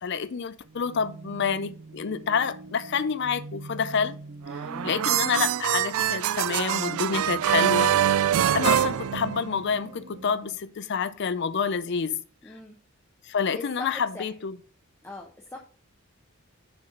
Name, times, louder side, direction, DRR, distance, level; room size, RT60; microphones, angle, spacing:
voice 1, 0.0-4.2 4.5-8.2 8.5-12.2 13.2-14.6, left 6 dB, 50° left, 0.4 m, -28 dB
sound 1, 0.6-10.6, right 2 dB, 50° right, 0.7 m, -45 dB
sound 2, 4.5-9.8, right 10 dB, 75° right, 0.3 m, -24 dB
voice 2, 4.6-4.9 12.4-12.8 13.5-14.3 15.0-15.6, left 2 dB, 10° left, 0.7 m, -40 dB
6.7 x 4.1 x 5.0 m
head